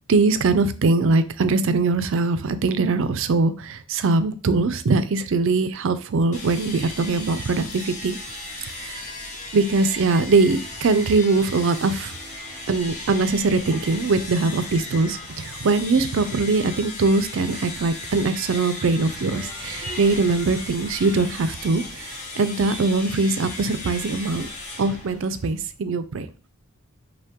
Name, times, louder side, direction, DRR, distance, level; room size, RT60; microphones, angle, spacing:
voice 1, 0.1-8.2 8.8-9.1 9.5-12.1 12.7-24.5 24.8-26.3, right 3 dB, 60° right, 11 dB, 0.4 m, -22 dB
sound 1, 6.3-25.8, left 2 dB, 35° left, 0.9 m, -36 dB
5.4 x 2.2 x 3.6 m, 0.36 s
head